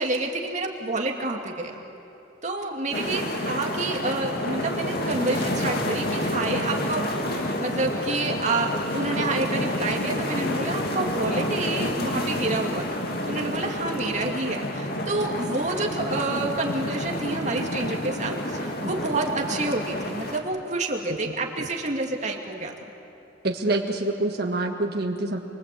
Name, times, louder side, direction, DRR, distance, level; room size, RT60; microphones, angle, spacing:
voice 1, 0.0-1.7 2.4-13.0 13.3-22.7, right 2 dB, 40° right, 1 dB, 2.5 m, -28 dB
sound 1, 2.9-20.4, left 1 dB, 55° left, 2.5 m, -29 dB
voice 2, 23.4-25.4, right 2 dB, 55° right, 1 dB, 1.8 m, -26 dB
27.5 x 24.0 x 8.5 m, 2.9 s
head